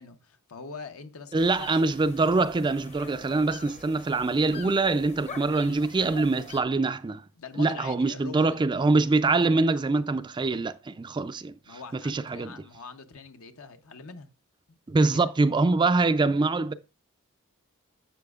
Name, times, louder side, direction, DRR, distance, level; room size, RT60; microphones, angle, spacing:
voice 1, 0.0-1.7 7.4-8.6 11.6-14.3 14.7-15.3, left 4 dB, 70° left, 0.8 m, -43 dB
voice 2, 1.3-7.2 7.6-11.5 12.0-12.5 14.9-16.7, right 3 dB, 20° right, 0.3 m, -24 dB
sound 1, 1.4-6.6, left 3 dB, 30° left, 0.8 m, -45 dB
11.5 x 7.7 x 2.4 m
head